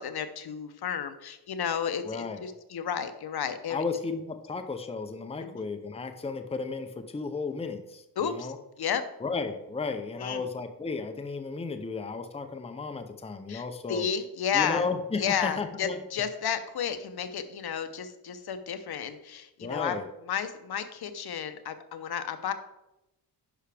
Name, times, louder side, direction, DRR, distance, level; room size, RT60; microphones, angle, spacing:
voice 1, 0.0-3.8 5.4-5.6 8.2-8.5 8.8-9.0 10.2-10.4 13.5-14.9 15.2-20.0 20.3-22.5, left 8 dB, 65° left, 10 dB, 0.8 m, -32 dB
voice 2, 2.0-2.4 3.7-8.6 9.2-14.0 14.5-16.0 19.6-20.1, left 4 dB, 15° left, 7 dB, 0.6 m, -34 dB
10.0 x 5.7 x 3.4 m, 0.93 s
wide cardioid pair, 115°, 41 cm